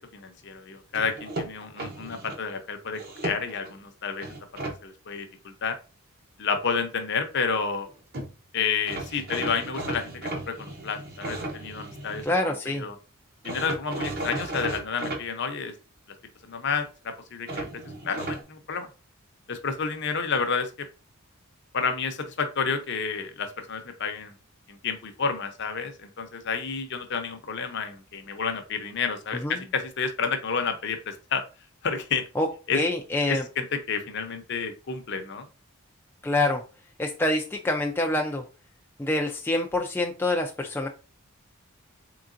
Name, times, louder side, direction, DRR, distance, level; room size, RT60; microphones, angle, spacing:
voice 1, 0.1-4.3 4.5-5.8 6.4-7.9 8.5-12.3 12.7-12.9 13.4-15.7 16.4-17.7 18.0-18.9 19.5-20.9 21.7-24.3 24.7-31.4 31.8-32.2 32.7-32.8 33.3-35.5, left 5 dB, 50° left, 6 dB, 0.6 m, -30 dB
sound 1, 0.9-2.4 2.9-3.7 4.2-4.8 7.9-8.0 8.1-8.3 8.9-12.3 13.4-15.2 17.5-18.4, right 2 dB, 45° right, 0.8 m, -34 dB
voice 2, 12.2-12.9 29.3-29.6 32.4-32.5 32.7-33.4 36.2-36.6 37.0-38.5 39.0-40.9, left 2 dB, 10° left, 1 dB, 0.3 m, -26 dB
3.8 x 3.4 x 2.5 m, 0.32 s
head